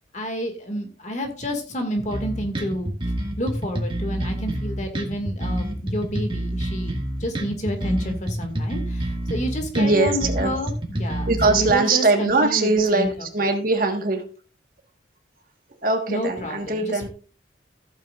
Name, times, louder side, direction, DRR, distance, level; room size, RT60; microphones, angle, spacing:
voice 1, 0.1-2.9 3.4-13.3 16.1-17.1, equal, 40° left, 2.0 m, -29 dB
sound 1, 2.1-11.7, right 1 dB, 25° right, 2.0 m, -28 dB
voice 2, 9.7-10.5 11.3-14.2 15.8-17.1, right 3 dB, 45° right, 1.5 m, -21 dB
15.0 x 8.7 x 2.5 m
head